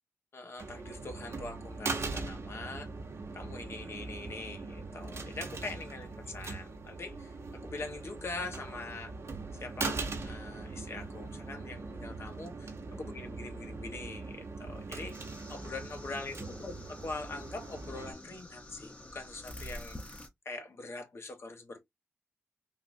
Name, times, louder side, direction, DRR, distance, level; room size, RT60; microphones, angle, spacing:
voice 1, 0.3-2.9 3.3-9.1 9.5-15.1 15.5-20.2 20.4-21.8, left 3 dB, 55° left, 1.2 m, -43 dB
sound 1, 0.6-18.1, right 3 dB, 60° right, 1.0 m, -41 dB
sound 2, 15.1-20.3, left 1 dB, 25° left, 0.9 m, -48 dB
3.9 x 2.4 x 2.6 m
cardioid pair, 70°, 5 cm